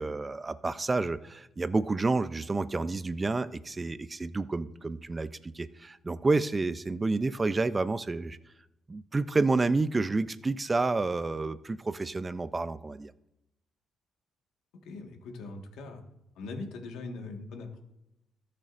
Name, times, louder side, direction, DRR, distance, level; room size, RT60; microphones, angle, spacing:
voice 1, 0.0-8.4 8.9-13.1, right 3 dB, 25° right, 14 dB, 0.5 m, -29 dB
voice 2, 14.8-16.0 16.3-17.8, left 3 dB, 85° left, 3 dB, 1.6 m, -41 dB
19.5 x 6.6 x 2.6 m, 0.88 s
cardioid pair, 90°, 0 cm